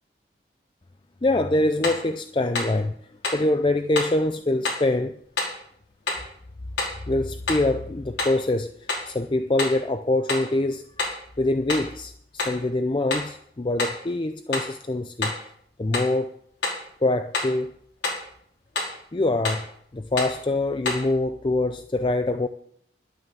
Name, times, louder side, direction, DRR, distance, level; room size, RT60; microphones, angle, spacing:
voice 1, 1.2-5.2 7.1-11.1 11.4-15.5 15.8-16.4 17.0-17.8 19.1-22.5, left 2 dB, 25° left, 0.5 m, -25 dB
sound 1, 1.8-2.1 2.5-2.8 3.2-3.5 4.0-4.2 4.6-4.9 5.4-5.6 6.1-6.3 6.8-7.0 7.5-7.7 8.2-8.4 8.9-9.1 9.6-9.8 10.3-10.5 11.0-11.2 11.7-12.0 12.4-12.6 13.1-13.3 13.8-14.0 14.5-14.8 15.2-15.4 15.9-16.2 16.6-16.9 17.3-17.6 18.0-18.3 18.7-19.0 19.4-19.7 20.2-20.4 20.9-21.1, left 3 dB, 75° left, 5.6 m, -28 dB
11.5 x 9.2 x 7.5 m
head